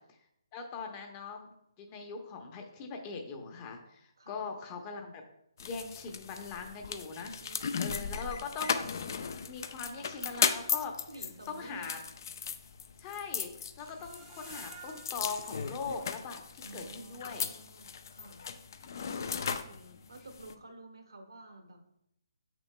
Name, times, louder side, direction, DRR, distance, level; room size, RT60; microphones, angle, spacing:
voice 1, 0.5-1.5 1.8-5.2 5.6-7.3 7.8-8.9 9.5-10.9 11.5-12.0 13.0-17.5 19.7-20.0, left 5 dB, 25° left, 4 dB, 0.8 m, -41 dB
sound 1, 5.6-20.5, left 6 dB, 50° left, 0.4 m, -37 dB
voice 2, 7.4-8.5 10.0-10.2 11.1-12.0 16.6-18.4 19.5-19.7 20.1-21.8, right 2 dB, 75° right, 3 dB, 1.2 m, -51 dB
Screech, 13.8-16.8 17.2-17.3 17.7-17.8, right 6 dB, 20° right, 0.7 m, -53 dB
7.1 x 6.0 x 2.2 m, 0.77 s
figure-of-eight pair, 140°, 2 cm